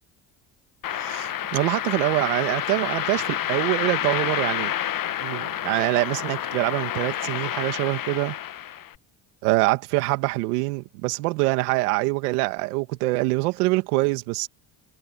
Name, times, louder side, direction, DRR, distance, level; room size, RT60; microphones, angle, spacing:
sound 1, 0.8-8.9, left 11 dB, 45° left, 1.2 m, -29 dB
voice 1, 0.9-4.7 5.2-8.4 9.4-14.5, right 23 dB, 85° right, 2.1 m, -25 dB
hypercardioid pair, 65°, 45 cm